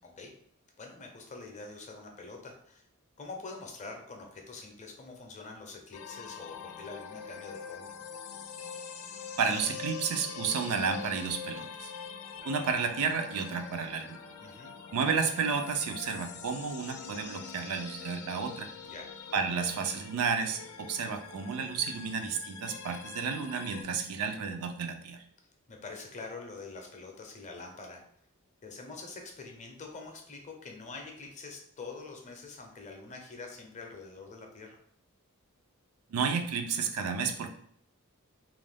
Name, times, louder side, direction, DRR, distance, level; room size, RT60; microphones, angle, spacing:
voice 1, 0.8-2.8 3.2-7.9 14.4-14.7 18.8-19.1 25.7-28.0 28.6-34.8, left 3 dB, 35° left, 2 dB, 0.5 m, -45 dB
sound 1, 5.9-23.8, left 6 dB, 85° left, 0.4 m, -44 dB
voice 2, 9.4-11.9 12.4-14.2 14.9-18.7 19.3-25.2 36.1-37.5, right 5 dB, 80° right, 6 dB, 0.4 m, -32 dB
2.4 x 2.2 x 3.3 m, 0.67 s
head